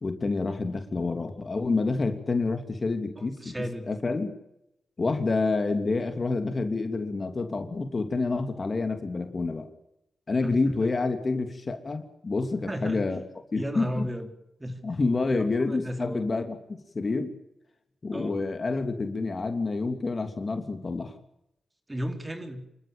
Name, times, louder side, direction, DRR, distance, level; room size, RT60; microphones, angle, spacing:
voice 1, 0.0-3.5 3.9-4.3 5.0-9.7 10.3-13.2 13.5-14.1 14.8-17.3 18.0-21.2, left 3 dB, 45° left, 7 dB, 3.0 m, -28 dB
voice 2, 3.2-3.9 10.4-10.7 12.6-13.0 13.6-14.3 14.6-14.8 15.3-16.3 18.1-18.3 21.9-22.6, equal, 20° right, 6 dB, 4.3 m, -34 dB
27.5 x 13.0 x 9.0 m, 0.85 s
supercardioid pair, 45°, 0 cm